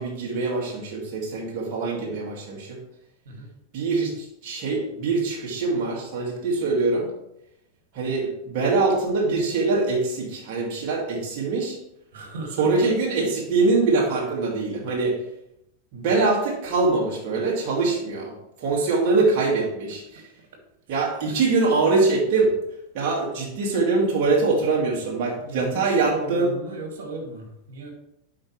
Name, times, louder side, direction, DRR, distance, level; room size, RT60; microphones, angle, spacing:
voice 1, 0.0-2.8 3.7-7.1 7.9-11.8 12.6-15.2 15.9-20.2 20.9-22.6 22.9-26.5, right 3 dB, 55° right, -3 dB, 2.2 m, -23 dB
voice 2, 12.1-12.9 18.8-19.2 20.9-21.3 25.4-27.9, right 3 dB, 70° right, 2 dB, 2.4 m, -36 dB
11.0 x 5.3 x 3.3 m, 0.80 s
hypercardioid pair, 95°, 0 cm